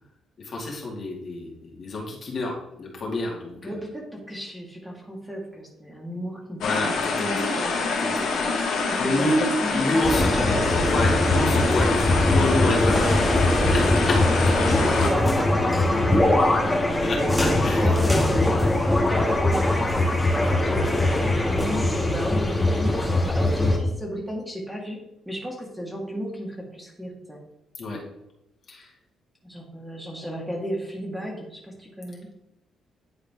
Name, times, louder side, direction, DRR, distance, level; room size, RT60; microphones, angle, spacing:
voice 1, 0.5-3.7 6.6-6.9 7.2-7.3 9.0-9.3 9.7-10.3 10.8-11.9 12.3-13.0 13.7-14.1 17.0-17.9 27.8-28.0 28.7-28.8, left 2 dB, 50° left, -2 dB, 2.1 m, -28 dB
voice 2, 3.6-7.9 8.1-10.8 13.5-14.1 14.6-15.9 16.4-18.5 19.1-25.0 25.3-27.4 29.4-32.3, equal, 5° right, -1 dB, 1.8 m, -34 dB
sound 1, 6.6-15.1, left 4 dB, 80° left, 1.7 m, -26 dB
sound 2, 10.0-23.8, left 1 dB, 15° left, 1.2 m, -21 dB
9.8 x 3.9 x 3.6 m, 0.85 s
cardioid pair, 90°, 0 cm